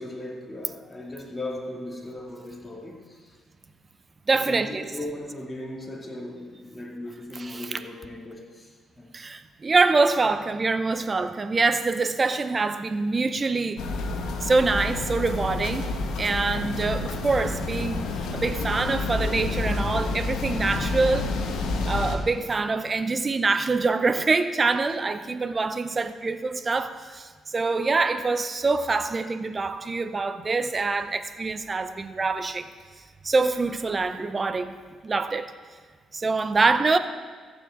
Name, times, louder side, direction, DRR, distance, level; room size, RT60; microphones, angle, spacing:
voice 1, 0.0-3.4 4.4-9.1, left 1 dB, 20° left, 2.3 m, -37 dB
voice 2, 4.3-4.9 7.3-7.8 9.1-13.8 14.4-21.3 21.8-32.7 33.2-34.8 35.0-35.5 36.1-37.0, right 3 dB, 30° right, 0.7 m, -25 dB
sound 1, 13.8-22.2, left 3 dB, 85° left, 1.2 m, -29 dB
14.5 x 8.8 x 3.8 m
cardioid pair, 90°, 0 cm